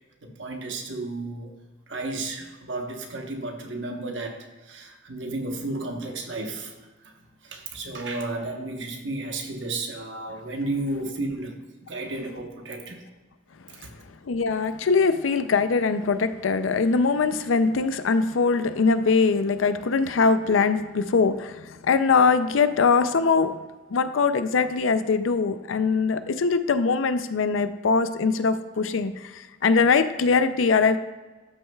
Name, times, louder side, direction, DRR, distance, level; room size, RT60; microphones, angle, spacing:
voice 1, 0.2-1.5 1.9-13.1 13.7-13.9, right 2 dB, 70° right, 2 dB, 1.1 m, -33 dB
voice 2, 14.3-23.5 23.9-31.0, left 4 dB, 90° left, 11 dB, 0.5 m, -22 dB
12.5 x 6.2 x 2.3 m, 1.2 s
head